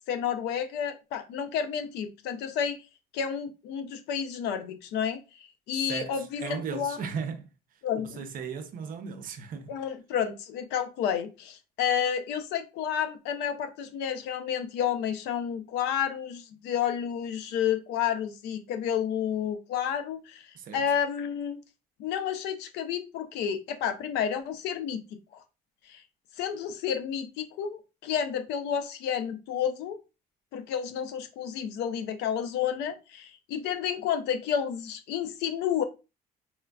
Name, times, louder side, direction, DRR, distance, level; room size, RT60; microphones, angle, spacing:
voice 1, 0.1-2.8 3.1-7.0 7.8-8.2 9.7-20.5 20.7-21.6 22.0-25.0 25.9-26.0 26.4-30.0 30.5-35.8, left 8 dB, 90° left, 0.6 m, -30 dB
voice 2, 5.7-7.5 8.0-9.8 20.5-20.9, right 6 dB, 55° right, 0.6 m, -37 dB
4.3 x 2.4 x 2.3 m
cardioid pair, 110°, 17 cm